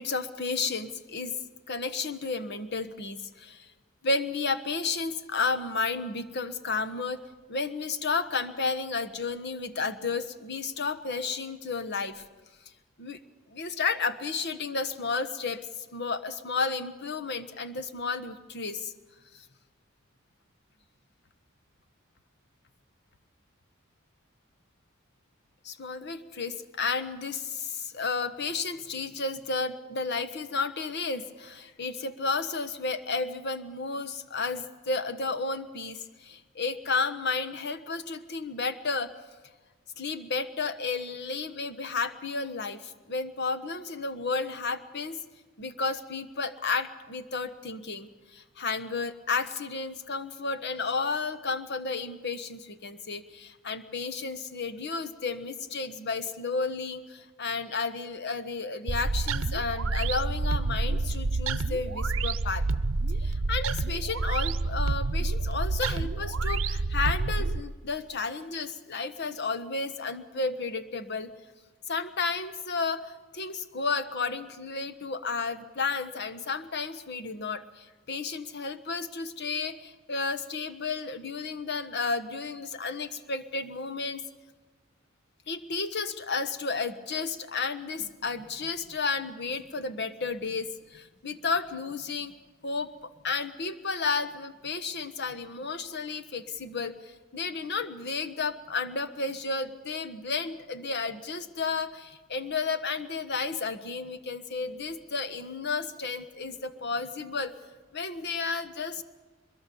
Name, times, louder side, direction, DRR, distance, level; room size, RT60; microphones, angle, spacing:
voice 1, 0.0-1.3 1.7-3.7 4.0-7.2 7.5-12.2 13.0-13.2 13.5-18.9 19.3-19.4 25.6-39.1 40.0-45.2 45.6-62.6 63.2-71.3 71.9-84.2 85.5-92.3 92.6-92.9 93.2-107.5 107.9-109.0, left 4 dB, 55° left, 11 dB, 1.3 m, -32 dB
sound 1, 58.9-67.6, right 3 dB, 70° right, 0.7 m, -28 dB
23.5 x 22.0 x 7.1 m, 1.3 s
head